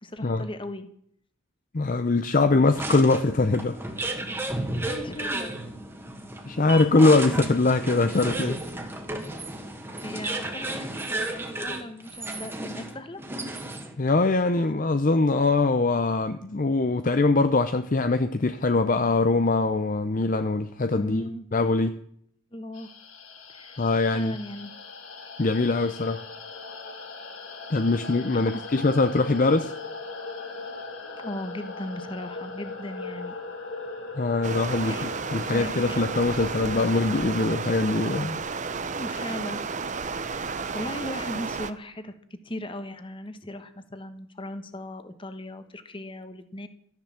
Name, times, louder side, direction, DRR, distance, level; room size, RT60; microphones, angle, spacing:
voice 1, 0.0-0.9 4.8-5.5 10.0-13.2 20.9-21.5 22.5-22.9 23.5-24.7 28.0-28.8 31.0-33.4 34.8-36.1 38.9-39.6 40.1-40.5 40.7-42.1 42.4-46.7, left 1 dB, 25° left, 1.3 m, -38 dB
voice 2, 1.7-3.9 6.5-8.6 14.0-22.0 23.8-24.3 25.4-26.2 27.7-29.7 34.2-38.4, left 3 dB, 40° left, 0.6 m, -23 dB
sound 1, 2.7-14.0, right 2 dB, 10° right, 1.8 m, -33 dB
sound 2, 22.7-37.4, left 3 dB, 80° left, 3.1 m, -39 dB
Stream, 34.4-41.7, right 4 dB, 35° right, 0.8 m, -32 dB
13.5 x 10.5 x 7.3 m
head